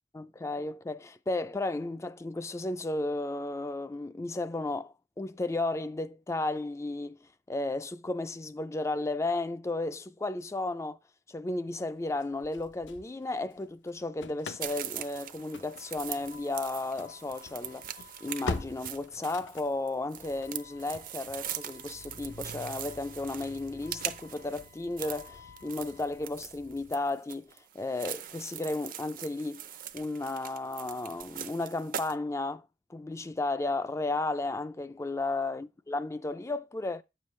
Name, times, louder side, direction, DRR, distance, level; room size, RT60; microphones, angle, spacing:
voice 1, 0.1-11.0 11.3-29.6 29.9-37.0, left 2 dB, 15° left, 0.3 m, -34 dB
Engine starting / Slam, 12.2-13.6 13.9-26.9, left 4 dB, 75° left, 0.7 m, -45 dB
sound 1, 14.6-32.1, right 10 dB, 50° right, 0.6 m, -42 dB
9.4 x 6.9 x 3.1 m
head